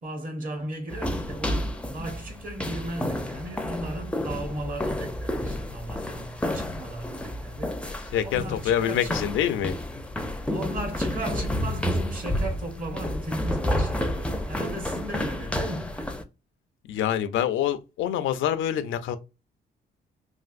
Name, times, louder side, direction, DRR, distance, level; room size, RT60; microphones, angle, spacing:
voice 1, 0.0-9.1 10.5-16.1, right 1 dB, 45° right, 1.2 m, -36 dB
sound 1, 0.9-16.2, left 1 dB, 5° left, 0.5 m, -30 dB
voice 2, 7.8-9.8 16.9-19.2, left 10 dB, 75° left, 0.4 m, -26 dB
3.3 x 2.5 x 2.5 m
cardioid pair, 90°, 20 cm